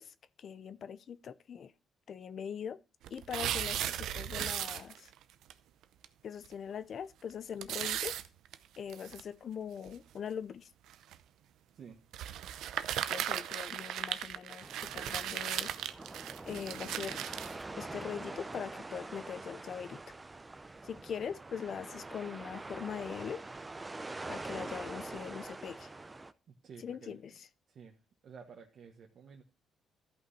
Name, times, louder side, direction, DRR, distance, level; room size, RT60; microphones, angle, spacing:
voice 1, 0.0-1.7 2.1-2.8 3.1-5.1 6.2-8.1 8.8-10.7 13.1-15.7 16.5-17.2 17.8-20.0 20.8-23.4 24.3-25.9 26.8-27.3, left 7 dB, 60° left, 0.6 m, -42 dB
sound 1, 3.0-5.2 5.5-5.6 6.0-6.1 6.5-6.6 7.6-9.2 9.9-10.0 10.9-11.2 12.1-17.6, right 11 dB, 85° right, 0.6 m, -37 dB
sound 2, 14.6-26.3, right 2 dB, 20° right, 0.7 m, -45 dB
voice 2, 26.5-27.4 27.7-28.0 28.2-29.4, right 6 dB, 60° right, 1.4 m, -52 dB
13.5 x 5.7 x 4.2 m
cardioid pair, 90°, 0 cm